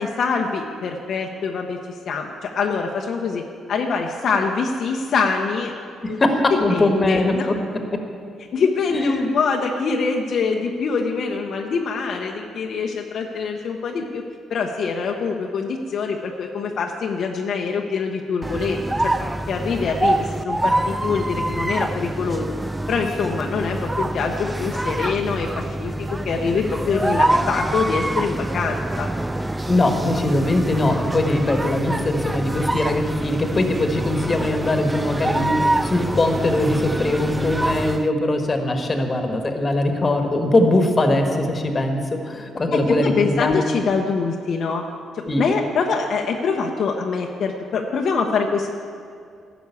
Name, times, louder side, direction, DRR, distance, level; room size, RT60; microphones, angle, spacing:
voice 1, 0.0-1.8 2.1-5.7 6.1-6.2 6.7-7.5 8.5-14.2 14.5-19.1 19.5-22.5 22.9-29.1 42.7-44.8 45.1-48.7, left 5 dB, 60° left, 2 dB, 0.8 m, -24 dB
voice 2, 6.0-8.0 8.9-9.3 29.7-42.0 42.2-43.6 45.3-45.4, left 2 dB, 30° left, 5 dB, 1.4 m, -21 dB
sound 1, 18.4-38.1, right 1 dB, 10° right, 0.4 m, -25 dB
12.0 x 6.2 x 8.3 m, 2.3 s
cardioid pair, 90°, 0 cm